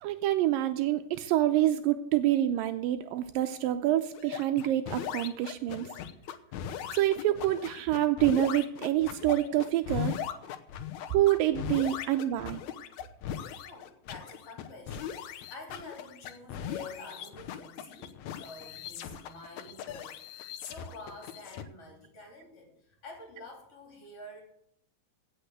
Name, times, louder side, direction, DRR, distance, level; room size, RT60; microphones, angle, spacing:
voice 1, 0.0-5.9 6.9-10.2 11.1-12.6, right 13 dB, 85° right, 8 dB, 2.4 m, -27 dB
sound 1, 4.1-21.6, left 9 dB, 70° left, 2.0 m, -39 dB
voice 2, 13.4-24.4, left 3 dB, 45° left, 1 dB, 4.1 m, -48 dB
16.5 x 6.3 x 8.1 m, 0.73 s
omnidirectional pair, 4.0 m